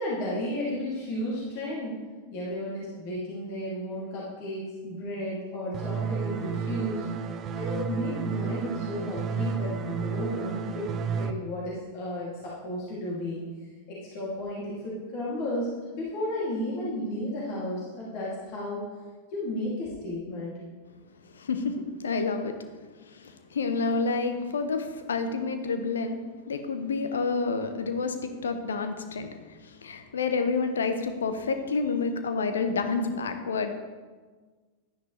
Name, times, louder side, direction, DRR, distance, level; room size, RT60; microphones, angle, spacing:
voice 1, 0.0-1.9 2.3-7.0 7.5-13.4 13.9-18.8 19.3-20.5, left 1 dB, 45° left, -7 dB, 2.7 m, -33 dB
sound 1, 5.7-11.3, right 6 dB, 30° right, 0.6 m, -32 dB
voice 2, 21.3-22.6 23.1-26.2 26.5-33.7, left 4 dB, 70° left, 8 dB, 1.0 m, -29 dB
11.5 x 9.9 x 3.3 m, 1.4 s
figure-of-eight pair, 90°, 0 cm